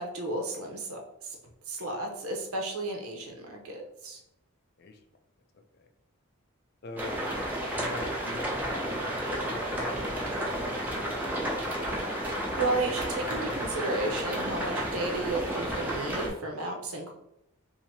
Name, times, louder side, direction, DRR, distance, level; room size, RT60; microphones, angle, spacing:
voice 1, 0.0-1.4 1.7-4.2 12.5-17.1, right 2 dB, 80° right, 1 dB, 0.9 m, -33 dB
voice 2, 6.8-7.2 7.6-8.4 9.0-11.5, left 2 dB, 45° left, 5 dB, 0.4 m, -44 dB
sound 1, 7.0-16.3, equal, 10° right, 0.7 m, -32 dB
2.8 x 2.8 x 4.2 m, 0.80 s
head